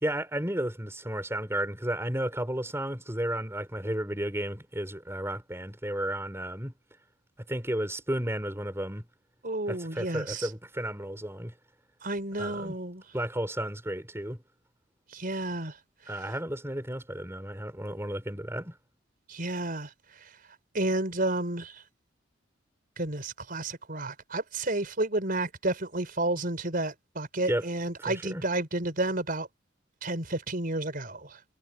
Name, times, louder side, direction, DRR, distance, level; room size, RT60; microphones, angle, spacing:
voice 1, 0.0-6.7 7.5-9.0 9.7-11.5 12.4-12.7 13.1-14.4 16.1-18.8 27.5-27.7 28.0-28.4, right 1 dB, 15° right, 4.5 m, -33 dB
voice 2, 9.4-10.5 12.0-13.0 15.1-15.8 19.3-19.9 20.2-20.3 20.7-21.8 23.0-29.5 30.0-31.4, right 2 dB, 45° right, 4.7 m, -31 dB
head